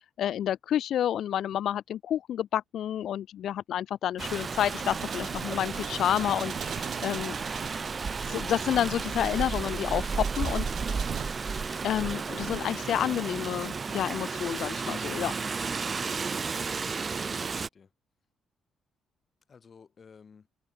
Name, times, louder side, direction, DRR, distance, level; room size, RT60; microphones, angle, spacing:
voice 1, 0.2-7.3 8.2-10.7 11.8-15.3, left 10 dB, 70° left, 0.8 m, -29 dB
Rain, 4.2-17.7, right 5 dB, 35° right, 0.5 m, -33 dB
sound 1, 4.8-11.2, right 9 dB, 60° right, 1.0 m, -42 dB
voice 2, 17.0-17.9 19.5-20.5, left 6 dB, 40° left, 6.9 m, -55 dB
cardioid pair, 90°, 0 cm